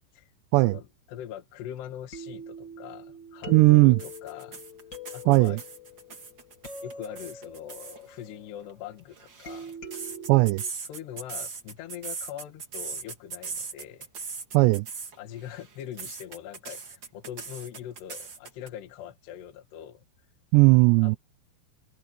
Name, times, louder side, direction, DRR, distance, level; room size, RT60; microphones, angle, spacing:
voice 1, 0.6-4.6 5.1-5.6 6.8-9.7 10.8-14.1 15.2-20.0 21.0-21.2, left 10 dB, 65° left, 3.6 m, -42 dB
sound 1, 1.8-1.9 2.1-8.9 9.5-10.7, left 1 dB, 25° left, 4.8 m, -43 dB
voice 2, 3.5-4.0 5.3-5.6 10.3-10.6 14.5-14.9 20.5-21.2, right 24 dB, 85° right, 2.5 m, -18 dB
sound 2, 4.0-8.0 9.0-15.2 15.5-18.7, right 5 dB, 35° right, 2.1 m, -39 dB
omnidirectional pair, 5.5 m